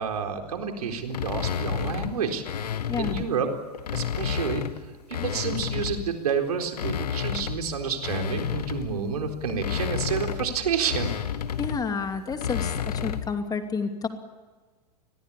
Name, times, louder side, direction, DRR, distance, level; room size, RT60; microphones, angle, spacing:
voice 1, 0.0-2.4 3.0-3.5 3.9-4.6 5.2-11.1, right 6 dB, 70° right, 4 dB, 4.1 m, -29 dB
sound 1, 1.1-3.3 3.7-6.2 6.6-13.4, left 8 dB, 70° left, 1.7 m, -31 dB
voice 2, 2.9-3.2 11.6-14.1, left 5 dB, 20° left, 6 dB, 2.7 m, -30 dB
29.5 x 21.5 x 8.6 m, 1.3 s
figure-of-eight pair, 100°, 21 cm